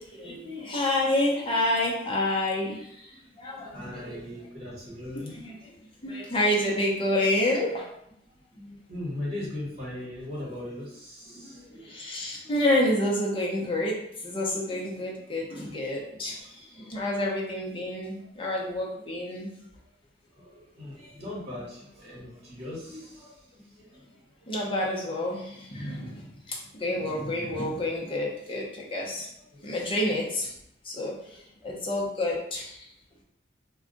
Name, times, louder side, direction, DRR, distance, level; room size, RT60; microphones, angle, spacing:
voice 1, 0.0-2.8 3.4-3.7 4.0-4.2 5.4-5.5 6.0-7.8 11.9-14.0 14.2-16.4 16.9-19.5 24.5-26.2 26.8-29.3 29.6-30.5 30.9-31.1 31.6-32.7, left 1 dB, 30° left, -3 dB, 0.8 m, -28 dB
voice 2, 3.5-6.3 8.3-11.9 12.3-12.6 15.5-15.7 16.0-17.2 17.5-17.6 18.2-18.3 19.4-19.5 20.3-24.6 27.3-27.6 29.1-29.7 30.9-31.7, left 1 dB, 35° right, -7 dB, 1.3 m, -41 dB
2.4 x 2.3 x 3.8 m, 0.75 s
head